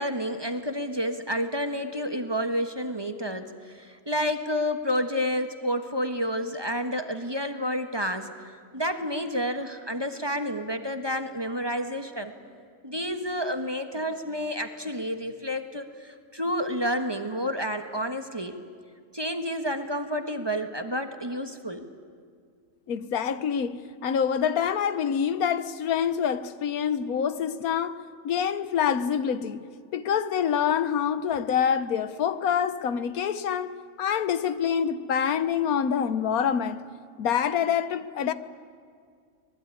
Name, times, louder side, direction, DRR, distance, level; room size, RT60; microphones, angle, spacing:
voice 1, 0.0-8.3 8.7-12.3 12.8-18.6 19.1-21.9, equal, 20° right, 1.3 m, -30 dB
voice 2, 22.9-29.6 29.9-36.8 37.2-38.3, left 8 dB, 90° left, 1.4 m, -26 dB
25.0 x 20.0 x 9.7 m
omnidirectional pair, 1.5 m